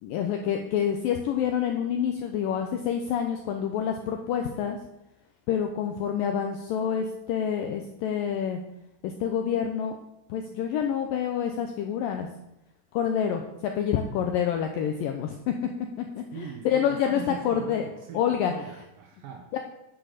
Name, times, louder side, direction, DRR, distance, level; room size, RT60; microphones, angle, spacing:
voice 1, 0.0-4.8 5.5-8.6 9.0-10.0 10.3-12.3 12.9-15.5 16.0-17.9 18.1-18.5 19.5-19.6, left 8 dB, 90° left, 4 dB, 2.0 m, -27 dB
voice 2, 16.3-19.5, right 8 dB, 75° right, 3 dB, 2.2 m, -41 dB
10.0 x 6.3 x 6.6 m, 0.86 s
omnidirectional pair, 4.9 m